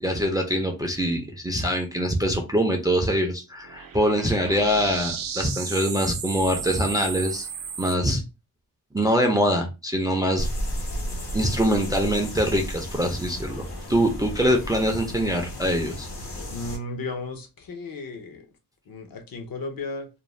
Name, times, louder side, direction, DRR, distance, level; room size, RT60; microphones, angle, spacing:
voice 1, 0.0-7.5 7.8-8.2 8.9-10.5 11.3-16.1, equal, 10° right, 0.3 m, -24 dB
sound 1, 3.6-8.0, right 7 dB, 65° right, 0.5 m, -34 dB
sound 2, 10.4-16.8, equal, 85° left, 1.1 m, -33 dB
voice 2, 16.5-18.4 18.9-20.1, left 3 dB, 65° left, 0.7 m, -34 dB
2.5 x 2.0 x 3.0 m
wide cardioid pair, 145°, 37 cm